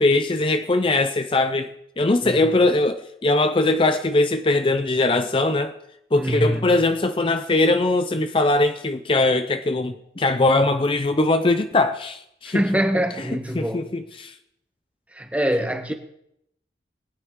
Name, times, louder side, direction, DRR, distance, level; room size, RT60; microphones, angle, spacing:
voice 1, 0.0-1.7 2.0-5.7 6.1-12.6 13.3-14.4, left 2 dB, 30° left, 0.5 m, -21 dB
voice 2, 6.2-6.6 12.5-13.9 15.1-15.9, equal, 10° right, 1.0 m, -24 dB
21.5 x 9.8 x 3.7 m
head